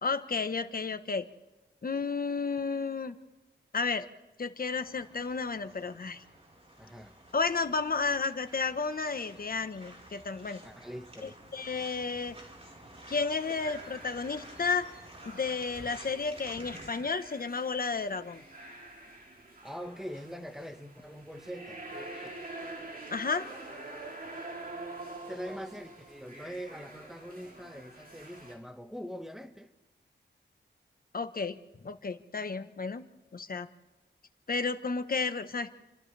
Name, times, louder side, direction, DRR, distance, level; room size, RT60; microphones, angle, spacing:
voice 1, 0.0-1.2 1.8-3.2 3.7-4.1 4.4-6.2 7.3-10.6 11.2-12.3 13.1-14.9 15.2-18.4 23.1-23.5 31.1-31.6 31.8-33.0 33.3-33.7 34.5-35.7, left 4 dB, 50° left, 1.2 m, -32 dB
sound 1, 4.7-17.0, right 1 dB, 30° right, 4.6 m, -52 dB
voice 2, 6.8-7.1 10.6-11.4 19.6-22.3 25.2-29.7, equal, ahead, 1.5 m, -43 dB
sound 2, 13.4-28.5, right 2 dB, 55° right, 5.1 m, -46 dB
30.0 x 25.0 x 3.4 m
wide cardioid pair, 80°, 19 cm